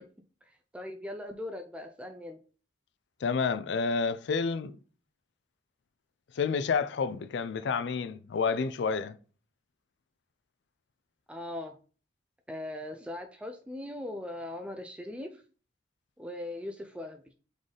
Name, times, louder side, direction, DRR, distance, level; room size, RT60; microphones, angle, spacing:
voice 1, 0.7-2.4 11.3-11.8 12.5-15.4 16.2-17.2, left 1 dB, 5° right, 0.3 m, -39 dB
voice 2, 3.2-4.8 6.3-9.2, left 5 dB, 70° left, 0.4 m, -29 dB
4.0 x 3.7 x 3.3 m
head